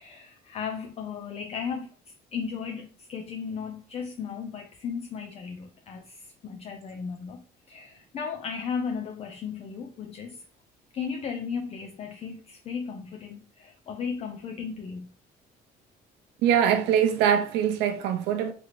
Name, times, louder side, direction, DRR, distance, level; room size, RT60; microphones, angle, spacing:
voice 1, 0.0-1.9 2.3-10.4 10.9-15.1, left 6 dB, 40° left, 0.3 m, -35 dB
voice 2, 16.4-18.5, right 9 dB, 85° right, 0.4 m, -23 dB
2.8 x 2.5 x 2.8 m
cardioid pair, 110°, 17 cm